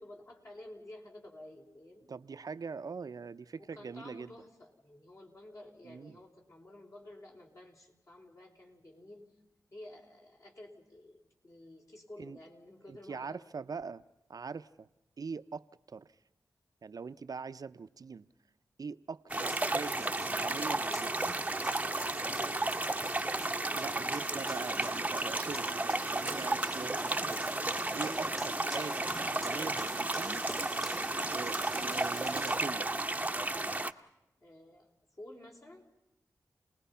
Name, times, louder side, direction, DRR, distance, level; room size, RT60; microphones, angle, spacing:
voice 1, 0.0-2.1 3.6-9.3 9.7-13.5 21.8-22.6 28.0-28.4 34.4-35.9, left 1 dB, 45° left, 5.0 m, -52 dB
voice 2, 2.1-4.3 5.8-6.2 12.2-12.4 12.9-14.0 14.3-14.9 15.2-16.1 16.8-18.3 18.8-21.4 23.7-27.7 27.9-30.4 31.3-32.9, right 5 dB, 60° right, 0.7 m, -43 dB
sound 1, 19.3-32.6, equal, ahead, 1.2 m, -45 dB
sound 2, 19.3-33.9, right 2 dB, 20° right, 0.9 m, -33 dB
29.5 x 20.0 x 5.7 m
wide cardioid pair, 70°, 7 cm